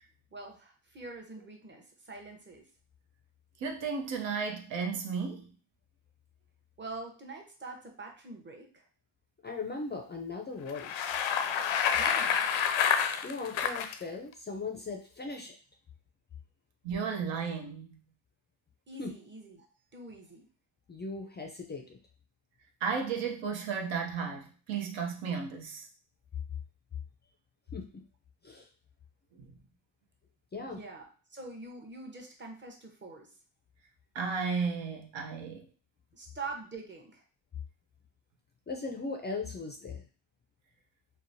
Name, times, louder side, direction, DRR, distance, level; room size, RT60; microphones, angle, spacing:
voice 1, 0.3-2.7 6.8-8.9 11.9-12.4 18.9-19.7 19.9-20.5 30.6-33.3 36.1-37.2, right 3 dB, 25° right, 1 dB, 0.8 m, -45 dB
voice 2, 3.6-5.5 16.8-18.0 22.8-25.9 34.1-35.6, right 5 dB, 70° right, 2 dB, 0.7 m, -34 dB
voice 3, 9.4-11.2 13.2-15.6 19.0-19.1 20.9-22.0 27.7-28.0 28.4-28.7 30.5-30.8 38.7-40.0, left 4 dB, 25° left, 2 dB, 0.4 m, -38 dB
Bicycle, 10.7-13.9, left 8 dB, 80° left, 0.5 m, -28 dB
2.9 x 2.1 x 2.6 m, 0.38 s
cardioid pair, 70°, 47 cm